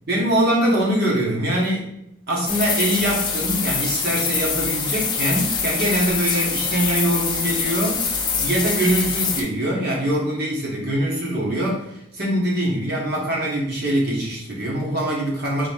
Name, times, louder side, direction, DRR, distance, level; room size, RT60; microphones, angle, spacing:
voice 1, 0.1-1.9 2.3-8.0 8.4-15.7, right 1 dB, 50° right, -3 dB, 1.2 m, -23 dB
sound 1, 2.5-9.4, left 5 dB, 20° left, 0.4 m, -24 dB
3.9 x 2.7 x 3.4 m, 0.79 s
head